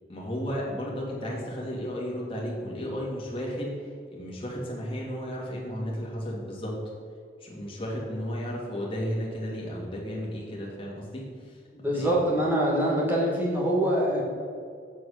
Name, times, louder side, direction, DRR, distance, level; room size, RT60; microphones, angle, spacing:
voice 1, 0.1-3.7 4.1-6.8 7.4-12.1, equal, 30° left, -4 dB, 2.1 m, -34 dB
voice 2, 11.8-14.2, right 1 dB, 10° right, -4 dB, 2.0 m, -24 dB
7.5 x 6.4 x 6.5 m, 2.2 s
head